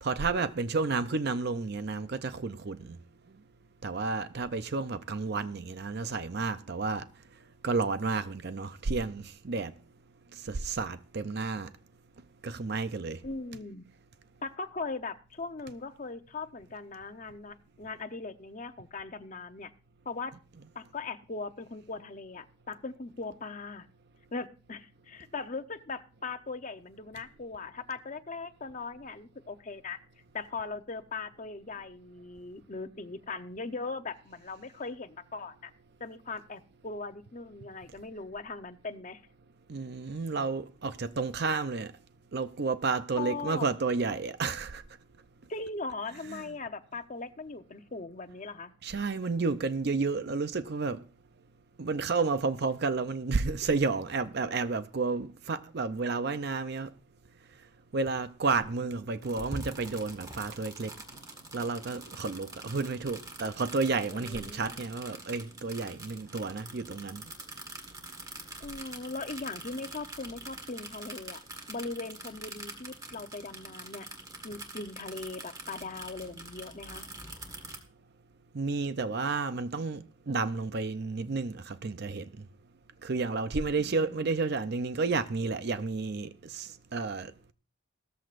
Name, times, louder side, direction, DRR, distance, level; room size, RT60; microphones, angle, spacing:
voice 1, 0.0-3.0 3.8-7.1 7.6-9.7 10.4-11.7 12.4-13.2 39.7-41.9 42.3-44.8 46.3-46.5 48.8-51.0 51.8-56.9 57.9-61.0 61.5-67.2 78.5-82.4 83.0-87.3, right 4 dB, 50° right, 0.5 m, -31 dB
voice 2, 13.2-13.9 14.4-19.7 20.1-20.3 20.7-23.9 24.3-30.0 30.3-35.7 36.0-39.2 43.2-43.7 45.5-48.7 64.1-64.8 68.6-71.4 71.7-74.1 74.4-77.1 83.8-84.3, left 3 dB, 35° left, 0.8 m, -39 dB
sound 1, 59.2-77.8, right 2 dB, 15° right, 1.7 m, -45 dB
16.5 x 13.5 x 2.5 m
head